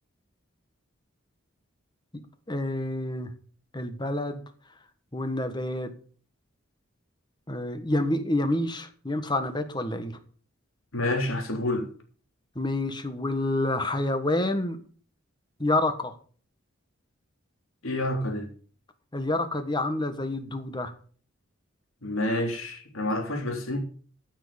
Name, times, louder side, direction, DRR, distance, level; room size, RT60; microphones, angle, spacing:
voice 1, 2.5-3.3 3.7-4.4 5.1-5.9 7.5-10.2 12.5-14.8 15.6-16.1 19.1-20.9, left 1 dB, 20° left, 1.5 m, -28 dB
voice 2, 10.9-11.9 17.8-18.5 22.0-23.8, left 1 dB, 80° left, 3.6 m, -28 dB
14.5 x 6.6 x 7.2 m
head